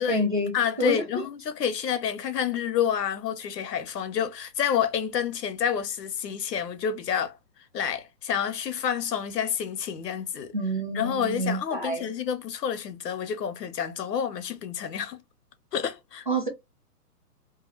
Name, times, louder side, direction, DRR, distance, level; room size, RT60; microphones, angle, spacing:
voice 1, 0.0-0.5 0.8-0.9 10.5-12.1 16.3-16.5, right 1 dB, 35° right, 0.4 m, -28 dB
voice 2, 0.5-7.4 7.7-10.5 10.9-15.2 15.7-16.3, left 8 dB, 85° left, 0.8 m, -29 dB
2.3 x 2.3 x 3.0 m
hypercardioid pair, 170°, 48 cm